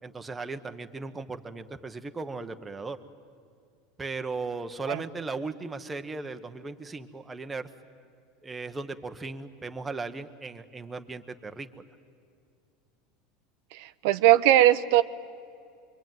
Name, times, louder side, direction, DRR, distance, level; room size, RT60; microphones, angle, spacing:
voice 1, 0.0-3.0 4.0-7.7 8.4-11.8, right 3 dB, 10° right, 7 dB, 1.0 m, -37 dB
voice 2, 13.7-15.0, right 13 dB, 65° right, 11 dB, 0.7 m, -20 dB
26.0 x 23.5 x 9.3 m, 2.4 s
supercardioid pair, 155°, 0 cm